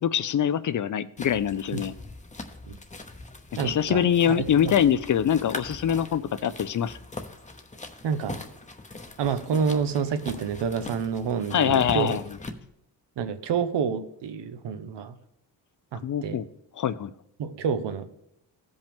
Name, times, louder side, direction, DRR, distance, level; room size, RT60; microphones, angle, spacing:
voice 1, 0.0-1.9 3.6-7.0 11.5-12.2 16.0-16.5 16.8-17.1, left 9 dB, 45° left, 16 dB, 0.5 m, -24 dB
sound 1, 1.2-12.5, left 2 dB, 15° left, 0.9 m, -41 dB
voice 2, 3.6-4.3 4.6-4.7 8.0-8.4 9.2-12.2 13.2-15.1 15.9-16.4 17.4-18.1, right 6 dB, 75° right, 10 dB, 0.9 m, -28 dB
15.5 x 5.4 x 3.5 m, 0.78 s
cardioid pair, 80°, 42 cm